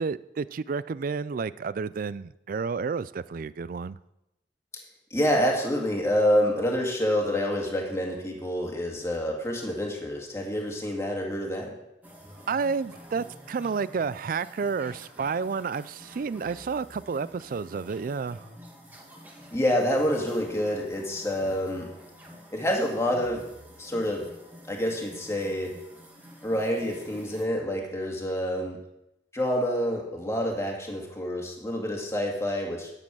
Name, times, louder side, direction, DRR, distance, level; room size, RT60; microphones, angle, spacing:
voice 1, 0.0-3.9 12.5-18.5, right 5 dB, 50° right, 18 dB, 0.4 m, -30 dB
voice 2, 5.1-11.8 19.5-21.9 22.5-23.4 23.8-24.3 24.7-25.7 26.4-28.8 29.3-32.9, equal, 15° left, 0 dB, 1.9 m, -27 dB
sound 1, 12.0-27.5, equal, 10° right, 1.6 m, -49 dB
10.5 x 7.7 x 6.2 m, 0.88 s
head